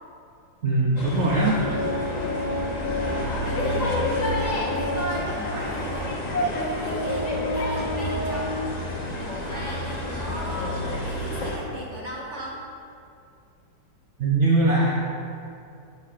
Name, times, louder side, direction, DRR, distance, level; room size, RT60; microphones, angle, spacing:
voice 1, 0.6-1.6 14.2-14.9, right 2 dB, 75° right, -4 dB, 0.6 m, -21 dB
sound 1, 0.9-11.6, left 1 dB, 75° left, 0.4 m, -29 dB
Organ, 1.4-5.3 6.0-6.1 6.5-8.6, left 2 dB, 60° left, 1.2 m, -31 dB
voice 2, 3.4-8.9 9.2-12.6, right 1 dB, 45° right, -4 dB, 1.2 m, -38 dB
9.9 x 5.5 x 2.4 m, 2.5 s
omnidirectional pair, 2.0 m